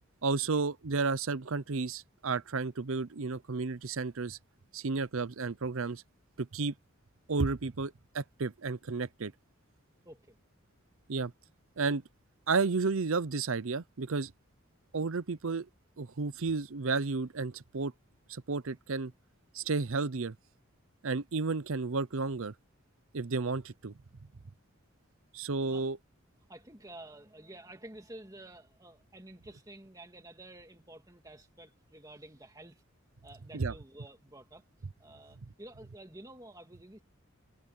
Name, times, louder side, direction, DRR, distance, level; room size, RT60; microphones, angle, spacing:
voice 1, 0.2-4.4 4.7-6.0 6.4-6.7 7.3-9.3 11.1-11.3 11.8-12.0 12.5-14.3 14.9-15.7 16.0-17.9 18.3-19.1 19.5-20.4 21.0-22.5 23.1-23.9 25.3-26.0 33.5-33.7, right 4 dB, 70° right, 0.7 m, -32 dB
voice 2, 10.0-10.4 25.7-25.9 26.5-32.8 33.2-34.6 35.0-37.0, right 1 dB, 15° right, 2.3 m, -51 dB
head